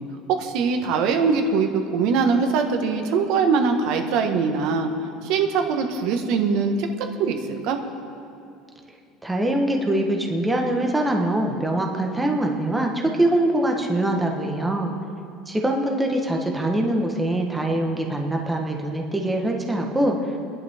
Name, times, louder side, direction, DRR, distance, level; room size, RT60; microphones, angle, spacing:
voice 1, 0.3-4.9 5.2-6.9 7.2-7.4 7.6-7.8, right 5 dB, 55° right, 5 dB, 1.5 m, -22 dB
voice 2, 9.2-14.9 15.5-20.2, right 1 dB, 5° right, 1 dB, 1.2 m, -23 dB
29.0 x 11.5 x 3.6 m, 2.5 s
cardioid pair, 165°, 0 cm